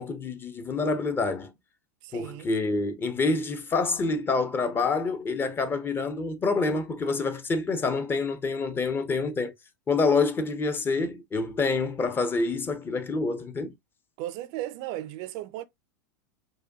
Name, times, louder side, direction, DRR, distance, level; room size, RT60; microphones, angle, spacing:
voice 1, 0.0-1.5 2.1-9.5 9.9-13.7, left 3 dB, 20° left, 0.7 m, -27 dB
voice 2, 2.0-2.5 14.2-15.6, right 14 dB, 50° right, 0.4 m, -35 dB
4.8 x 2.2 x 2.6 m
hypercardioid pair, 105°, 10 cm